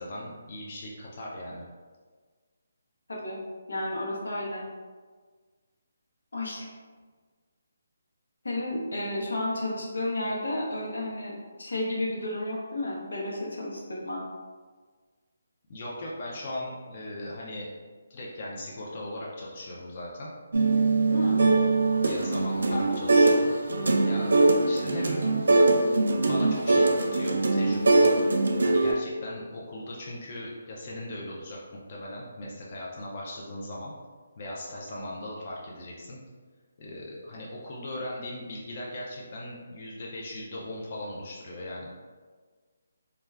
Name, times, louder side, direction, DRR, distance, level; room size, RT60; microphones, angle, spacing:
voice 1, 0.0-1.6 15.7-17.7 18.1-20.3 22.0-23.5 24.1-25.3 26.2-28.2 28.6-33.9 34.4-36.2 36.8-41.9, left 1 dB, 35° left, -4 dB, 0.4 m, -38 dB
voice 2, 3.1-3.4 3.7-4.6 6.3-6.7 8.4-14.2 21.1-21.4 22.7-22.8, left 1 dB, 90° left, -3 dB, 0.8 m, -32 dB
sound 1, 20.5-23.4 23.7-28.9, right 2 dB, 85° right, 0.3 m, -22 dB
2.3 x 2.2 x 3.3 m, 1.5 s
hypercardioid pair, 170°, 0 cm